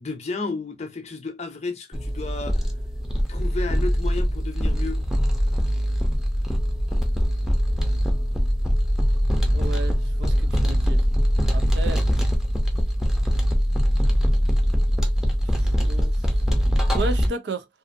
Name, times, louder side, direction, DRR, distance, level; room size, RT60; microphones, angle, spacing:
voice 1, 0.0-2.6 3.3-5.0, left 3 dB, 40° left, 0.6 m, -32 dB
sound 1, 1.9-17.3, equal, 5° right, 0.6 m, -22 dB
voice 2, 9.5-11.0 11.5-12.0 15.4-16.3 16.9-17.7, right 2 dB, 70° right, 0.5 m, -33 dB
2.6 x 2.5 x 2.5 m
head